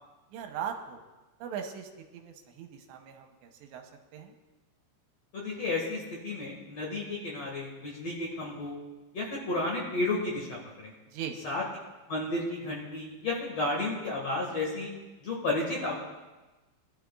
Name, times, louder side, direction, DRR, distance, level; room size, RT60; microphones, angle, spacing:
voice 1, 0.3-1.0 1.4-4.3 11.1-11.4, right 8 dB, 80° right, 4 dB, 3.1 m, -40 dB
voice 2, 5.3-8.8 9.1-10.9 11.4-11.6 12.1-14.9 15.2-16.0, left 2 dB, 45° left, -3 dB, 2.3 m, -32 dB
22.0 x 12.5 x 2.4 m, 1.1 s
omnidirectional pair, 5.1 m